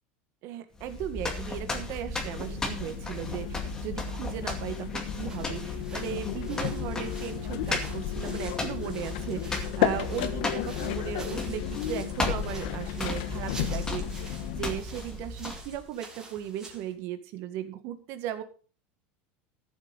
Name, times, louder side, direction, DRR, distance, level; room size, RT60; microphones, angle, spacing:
voice 1, 0.4-18.4, right 11 dB, 50° right, 10 dB, 1.8 m, -37 dB
sound 1, 0.8-15.9, left 2 dB, 10° left, 2.2 m, -35 dB
sound 2, 2.3-14.8, left 12 dB, 70° left, 1.4 m, -34 dB
sound 3, 5.1-16.9, right 2 dB, 10° right, 3.1 m, -48 dB
13.5 x 7.8 x 5.4 m, 0.38 s
supercardioid pair, 150°, 5 cm